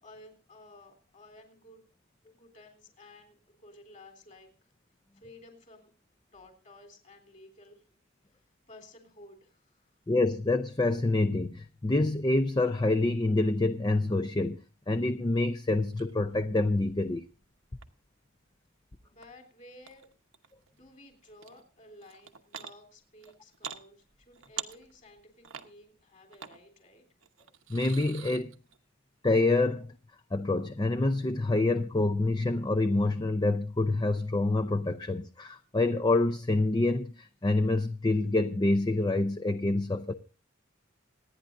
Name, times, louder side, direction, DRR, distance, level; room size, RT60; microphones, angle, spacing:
voice 1, 0.0-1.8 2.3-4.5 5.1-5.9 6.3-7.8 8.3-8.4 8.7-9.9 19.1-20.1 20.7-27.0, left 1 dB, 35° left, 3.6 m, -54 dB
voice 2, 10.1-14.6 14.9-17.2 27.7-28.5 29.2-29.9 30.3-40.1, left 2 dB, 20° left, 0.5 m, -27 dB
sound 1, 15.9-16.1 16.6-17.8 19.2-19.3 19.8-20.7 21.2-21.6 22.0-22.7 23.2-23.8 24.1-25.2 25.4-25.7 26.3-26.6 27.2-28.8, right 9 dB, 70° right, 1.0 m, -44 dB
26.5 x 9.7 x 2.6 m
head